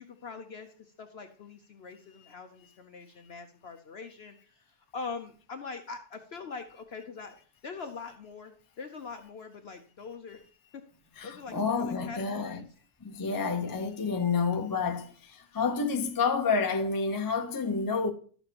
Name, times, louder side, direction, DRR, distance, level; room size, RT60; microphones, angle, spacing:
voice 1, 0.0-7.4 7.6-10.4 10.7-10.8 11.2-12.7 13.4-13.8, left 4 dB, 60° left, 0.7 m, -43 dB
voice 2, 11.2-12.6 13.0-18.1, left 5 dB, 30° left, 0.3 m, -29 dB
12.0 x 6.9 x 2.9 m
omnidirectional pair, 1.7 m